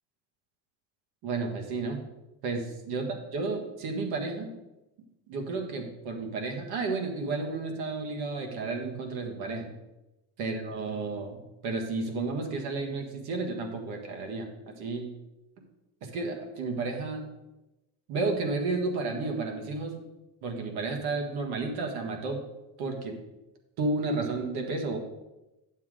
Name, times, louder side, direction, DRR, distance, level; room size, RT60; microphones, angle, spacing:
voice 1, 1.2-2.0 2.4-4.5 5.3-9.7 10.4-15.1 16.0-17.2 18.1-20.0 20.4-22.4 22.8-23.2 23.8-25.0, right 3 dB, 60° right, 3 dB, 1.7 m, -32 dB
9.8 x 7.3 x 3.7 m, 0.99 s
cardioid pair, 175°, 43 cm